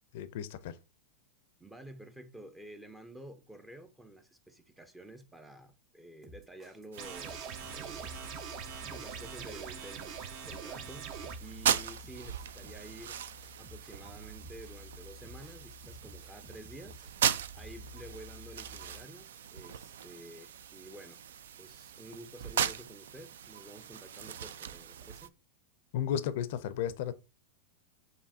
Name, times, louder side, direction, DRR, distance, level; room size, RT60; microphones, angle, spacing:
voice 1, 0.1-0.8 25.9-27.1, left 9 dB, 65° left, 0.4 m, -34 dB
voice 2, 1.6-8.1 8.9-13.2 13.6-17.1 17.5-21.2 21.6-25.3, right 1 dB, 10° right, 0.5 m, -50 dB
sound 1, 6.2-19.0, equal, 35° right, 1.7 m, -51 dB
sound 2, 6.9-25.3, right 9 dB, 80° right, 0.3 m, -39 dB
sound 3, 7.0-11.4, right 7 dB, 50° right, 0.6 m, -43 dB
6.9 x 2.7 x 2.7 m
hypercardioid pair, 120°, 0 cm